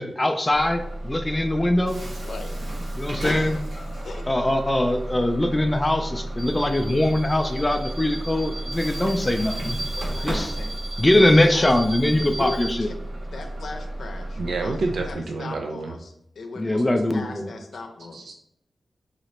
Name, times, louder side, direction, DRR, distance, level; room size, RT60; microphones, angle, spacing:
voice 1, 0.0-2.0 3.0-3.6 4.3-9.8 10.2-10.5 11.0-12.9 16.6-17.5, left 1 dB, 20° left, 5 dB, 0.3 m, -22 dB
Bus / Alarm, 0.5-15.1, right 1 dB, 55° right, 0.7 m, -32 dB
voice 2, 2.2-2.6 3.2-4.3 9.9-10.8 11.1-11.8 12.2-13.0 13.3-18.2, left 3 dB, 80° left, 4 dB, 0.6 m, -38 dB
voice 3, 14.4-15.9 18.1-18.3, right 3 dB, 85° right, 4 dB, 0.3 m, -28 dB
3.1 x 2.9 x 4.1 m, 0.74 s
wide cardioid pair, 90°, 0 cm